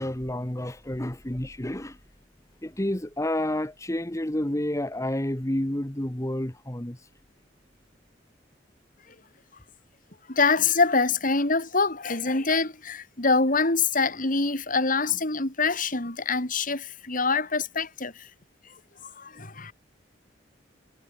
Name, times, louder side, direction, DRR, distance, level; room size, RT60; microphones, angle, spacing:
voice 1, 0.0-2.0 2.6-7.1, left 1 dB, 15° left, 1.4 m, -30 dB
voice 2, 10.3-18.3 18.7-19.7, left 4 dB, 50° left, 3.7 m, -25 dB
head